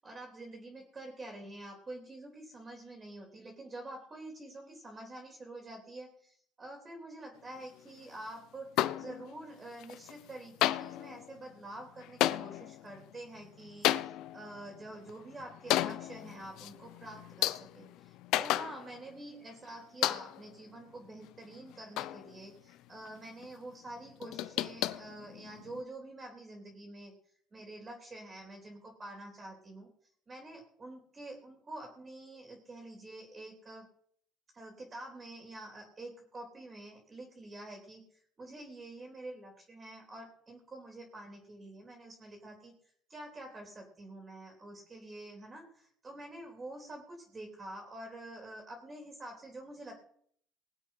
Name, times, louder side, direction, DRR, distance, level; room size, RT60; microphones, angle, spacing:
voice 1, 0.0-27.1 27.5-29.9 30.3-33.9 34.5-42.7 43.1-49.9, right 1 dB, 25° right, 2 dB, 3.2 m, -47 dB
sound 1, 8.8-9.5 9.8-10.3 10.6-19.2 19.5-19.6 20.0-20.6 21.0-22.8 23.1-23.2 23.4-23.5 23.9-25.8, left 15 dB, 75° left, 0.6 m, -34 dB
19.0 x 8.1 x 5.7 m, 0.63 s
cardioid pair, 115°, 0 cm